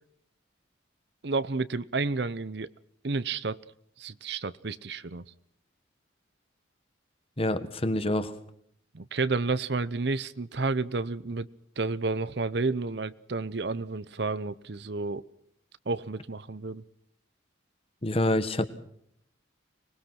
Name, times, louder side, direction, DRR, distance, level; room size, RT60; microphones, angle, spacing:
voice 1, 1.2-2.7 3.0-3.6 4.0-5.2 8.9-11.5 11.8-15.2 15.9-16.8, right 3 dB, 60° right, 16 dB, 0.8 m, -31 dB
voice 2, 7.4-8.3 18.0-18.7, left 1 dB, 30° left, 11 dB, 1.5 m, -27 dB
25.5 x 20.5 x 6.0 m, 0.69 s
head